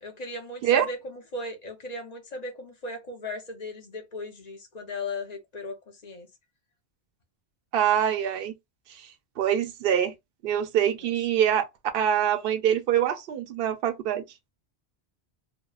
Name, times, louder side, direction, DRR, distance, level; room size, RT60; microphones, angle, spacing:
voice 1, 0.0-6.3, left 2 dB, 45° left, 0.7 m, -37 dB
voice 2, 7.7-8.5 9.4-10.1 10.4-11.7 11.9-14.2, right 10 dB, 65° right, 0.7 m, -24 dB
2.8 x 2.0 x 2.2 m
omnidirectional pair, 1.1 m